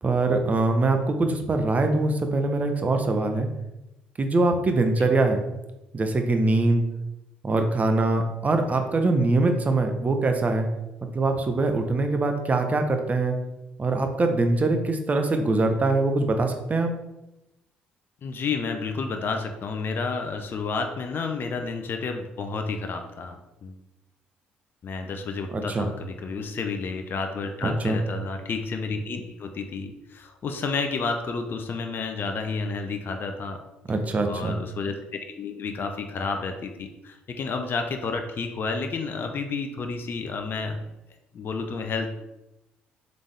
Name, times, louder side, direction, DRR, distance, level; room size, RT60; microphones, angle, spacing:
voice 1, 0.0-3.5 4.2-5.4 5.9-6.8 7.4-10.7 11.1-13.4 13.8-16.9 25.5-25.9 27.6-28.0 33.9-34.6, right 2 dB, 30° right, 5 dB, 0.7 m, -23 dB
voice 2, 18.2-23.8 24.8-33.6 34.3-34.9 35.2-40.9 41.3-42.1, left 4 dB, 45° left, 5 dB, 0.5 m, -31 dB
3.9 x 3.5 x 3.3 m, 0.96 s
hypercardioid pair, 55°, 5 cm